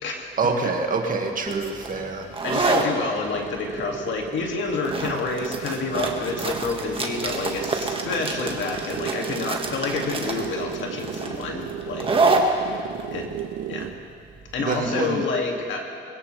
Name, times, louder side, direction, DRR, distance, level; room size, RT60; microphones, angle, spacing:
voice 1, 0.4-2.4 14.6-15.2, right 4 dB, 45° right, 3 dB, 1.9 m, -26 dB
sound 1, 1.5-14.9, right 3 dB, 25° right, 1.6 m, -28 dB
sound 2, 2.3-14.1, right 11 dB, 75° right, 0.7 m, -35 dB
voice 2, 2.4-12.1 12.5-12.7 13.1-13.3 13.7-13.9 14.5-15.8, left 4 dB, 70° left, 1 dB, 2.3 m, -28 dB
21.5 x 16.5 x 3.3 m, 2.4 s
cardioid pair, 90°, 20 cm